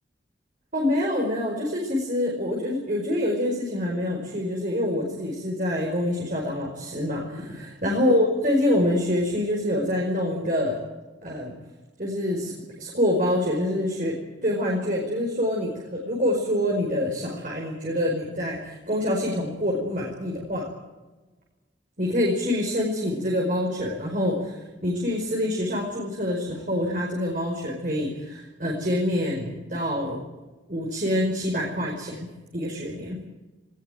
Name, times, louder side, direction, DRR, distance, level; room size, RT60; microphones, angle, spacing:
voice 1, 0.7-10.8 11.2-11.5 12.0-12.5 12.8-14.1 14.4-20.7 22.0-30.2 30.7-32.3 32.5-33.2, left 1 dB, 45° right, -1 dB, 5.1 m, -26 dB
19.5 x 19.5 x 9.3 m, 1.2 s
head